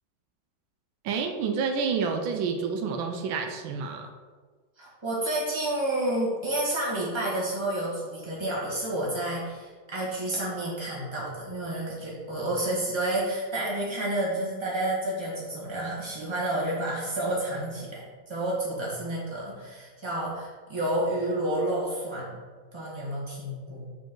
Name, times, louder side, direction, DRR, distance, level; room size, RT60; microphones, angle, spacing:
voice 1, 1.0-4.1, right 5 dB, 85° right, 4 dB, 1.5 m, -29 dB
voice 2, 4.8-22.4 22.7-23.9, right 1 dB, 15° right, -6 dB, 1.9 m, -30 dB
6.7 x 5.0 x 3.8 m, 1.5 s
omnidirectional pair, 2.1 m